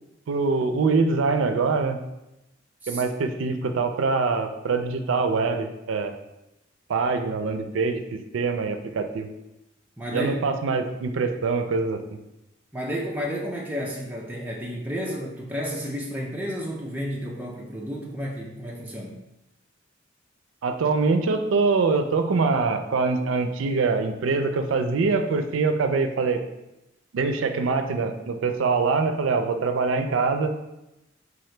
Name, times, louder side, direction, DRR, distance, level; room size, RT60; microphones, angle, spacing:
voice 1, 0.3-2.0 2.9-6.1 6.9-9.3 10.1-12.0 20.6-26.4 27.1-30.5, right 4 dB, 85° right, 7 dB, 0.4 m, -24 dB
voice 2, 10.0-10.4 12.7-19.1, equal, 10° right, -3 dB, 0.4 m, -31 dB
3.8 x 2.8 x 3.2 m, 0.93 s
head